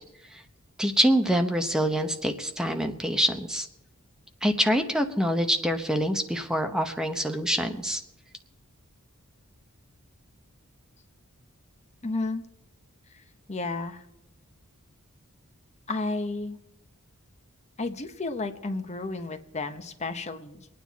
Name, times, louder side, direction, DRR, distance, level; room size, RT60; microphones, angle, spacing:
voice 1, 0.8-3.7 4.4-8.0, equal, 5° right, 5 dB, 0.9 m, -25 dB
voice 2, 12.0-12.4 13.5-14.0 15.9-16.6 17.8-20.7, left 3 dB, 30° left, 8 dB, 0.9 m, -32 dB
23.5 x 9.6 x 4.1 m, 0.87 s
head